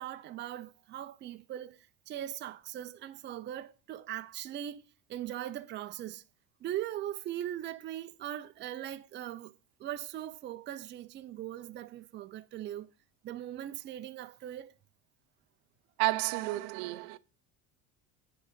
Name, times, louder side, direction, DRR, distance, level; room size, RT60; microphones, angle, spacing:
voice 1, 0.0-1.8 2.1-4.8 5.1-6.2 6.6-9.5 9.8-12.9 13.2-14.7, right 12 dB, 25° right, 0.4 m, -40 dB
voice 2, 16.0-17.2, right 19 dB, 85° right, 0.7 m, -31 dB
9.5 x 4.0 x 6.5 m
cardioid pair, 145°, 43 cm